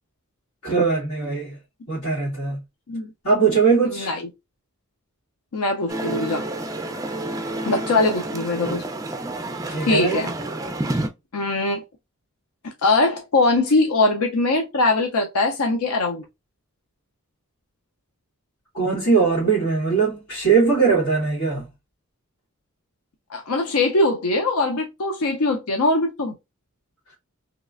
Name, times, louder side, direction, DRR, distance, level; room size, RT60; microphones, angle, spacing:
voice 1, 0.6-1.6 1.9-2.6 3.2-4.1 9.7-10.2 18.7-21.7, right 5 dB, 70° left, 2.0 m, -20 dB
voice 2, 3.8-4.3 5.5-6.4 7.7-8.8 9.9-10.3 11.3-11.8 12.8-16.2 23.3-26.3, left 2 dB, 90° left, 0.6 m, -21 dB
sound 1, 5.9-11.1, right 1 dB, 15° right, 0.4 m, -29 dB
3.2 x 2.9 x 2.4 m
head